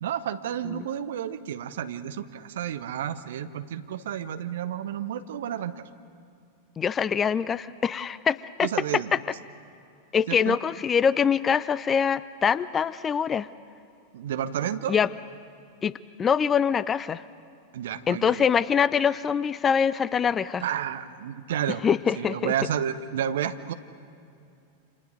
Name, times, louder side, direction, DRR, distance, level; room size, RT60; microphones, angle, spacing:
voice 1, 0.0-5.8 8.6-9.1 10.3-10.6 14.1-15.0 17.7-18.5 20.6-21.8 22.2-23.7, right 9 dB, 60° right, 10 dB, 1.1 m, -31 dB
voice 2, 6.8-8.7 10.1-13.5 14.9-15.1 15.8-17.2 18.1-20.6 21.8-22.5, left 7 dB, 20° left, 19 dB, 0.5 m, -24 dB
29.5 x 27.0 x 5.2 m, 2.5 s
figure-of-eight pair, 90°, 0 cm